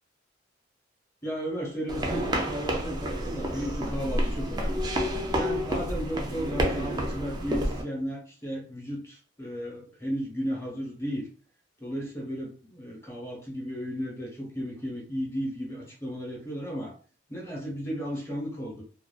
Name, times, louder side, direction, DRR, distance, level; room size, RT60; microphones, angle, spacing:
voice 1, 1.2-4.9 5.3-11.3 11.8-16.9 17.3-18.8, equal, 15° left, -3 dB, 0.8 m, -34 dB
sound 1, 1.9-7.8, equal, 20° right, 0.3 m, -29 dB
2.4 x 2.2 x 2.3 m, 0.39 s
head